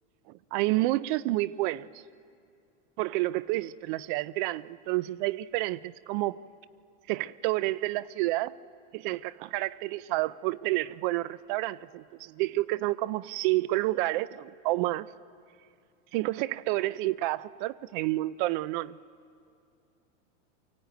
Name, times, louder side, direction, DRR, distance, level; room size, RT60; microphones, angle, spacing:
voice 1, 0.5-1.9 3.0-6.4 7.1-8.5 8.9-15.1 16.1-19.0, right 18 dB, 45° right, 0.5 m, -29 dB
23.5 x 16.5 x 9.1 m
supercardioid pair, 145°, 37 cm